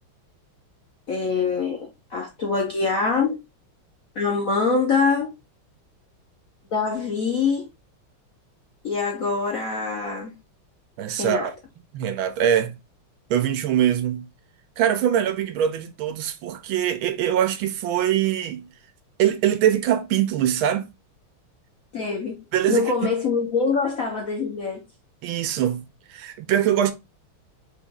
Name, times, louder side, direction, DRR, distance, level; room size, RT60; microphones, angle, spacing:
voice 1, 1.1-3.4 4.2-5.3 6.7-7.7 8.8-10.3 11.2-11.5 21.9-22.4 22.7-24.8, left 4 dB, 60° left, 0.9 m, -24 dB
voice 2, 11.0-11.5 11.9-12.8 13.3-14.3 14.8-18.6 19.2-20.9 22.5-22.9 25.2-26.9, right 10 dB, 75° right, 1.4 m, -23 dB
4.3 x 3.0 x 3.6 m
omnidirectional pair, 2.3 m